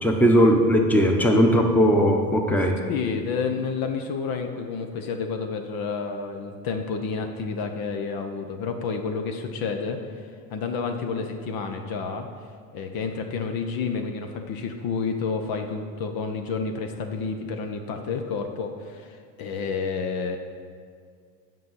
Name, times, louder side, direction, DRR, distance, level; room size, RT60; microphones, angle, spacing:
voice 1, 0.0-2.8, equal, 5° left, 2 dB, 1.1 m, -18 dB
voice 2, 2.9-10.0 10.5-12.3 12.7-20.4, left 5 dB, 45° left, 5 dB, 1.0 m, -30 dB
7.7 x 5.5 x 7.4 m, 2.1 s
hypercardioid pair, 80°, 49 cm